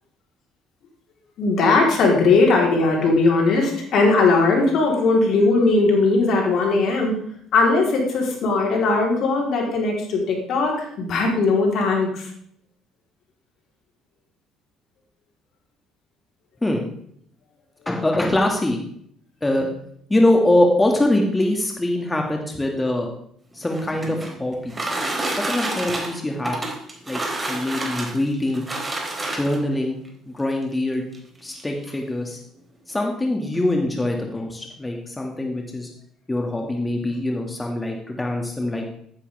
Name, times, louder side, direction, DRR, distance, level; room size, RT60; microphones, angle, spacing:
voice 1, 1.4-7.2 7.5-12.3, left 3 dB, 60° left, 0 dB, 4.2 m, -19 dB
voice 2, 17.9-18.8 19.4-19.7 20.1-23.1 23.5-24.9 25.4-26.6 27.1-27.2 27.5-28.7 29.3-30.0 30.3-31.0 31.4-32.4 32.9-35.9 36.3-38.9, left 1 dB, 15° left, 1 dB, 2.4 m, -23 dB
sound 1, 23.5-29.7 30.6-30.7 31.1-31.2 31.5-31.9, right 2 dB, 20° right, 4.0 m, -29 dB
14.5 x 11.5 x 3.7 m, 0.68 s
hypercardioid pair, 55°, 0 cm